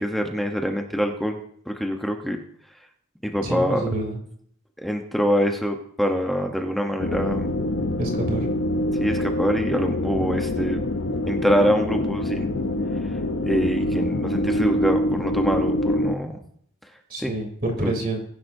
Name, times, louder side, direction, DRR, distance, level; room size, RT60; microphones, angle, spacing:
voice 1, 0.0-1.4 1.7-2.4 3.2-3.9 4.8-7.5 9.0-10.8 11.3-12.6 13.0-16.4 17.2-17.3 17.8-17.9, equal, ahead, 3 dB, 0.9 m, -25 dB
voice 2, 3.4-4.2 8.0-8.4 17.1-18.2, right 1 dB, 40° right, 0 dB, 3.4 m, -27 dB
sound 1, 7.0-16.1, left 1 dB, 60° left, 0.8 m, -25 dB
22.5 x 11.0 x 2.7 m, 0.67 s
head